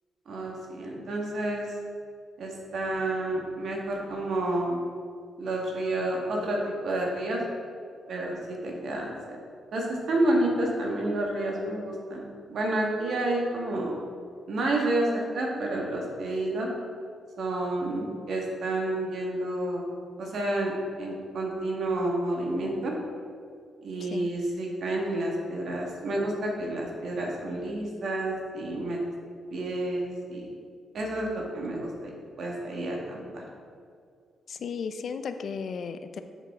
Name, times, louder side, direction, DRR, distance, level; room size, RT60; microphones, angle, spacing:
voice 1, 0.3-1.7 2.4-4.8 5.4-7.4 8.1-9.4 9.7-13.9 14.5-16.7 17.4-20.7 21.0-22.9 23.8-29.0 29.5-30.5 30.9-32.1 32.4-33.4, right 1 dB, 65° right, -1 dB, 1.8 m, -30 dB
voice 2, 34.5-36.2, left 6 dB, 60° left, 9 dB, 0.5 m, -35 dB
8.0 x 6.8 x 3.7 m, 2.3 s
cardioid pair, 90°, 0 cm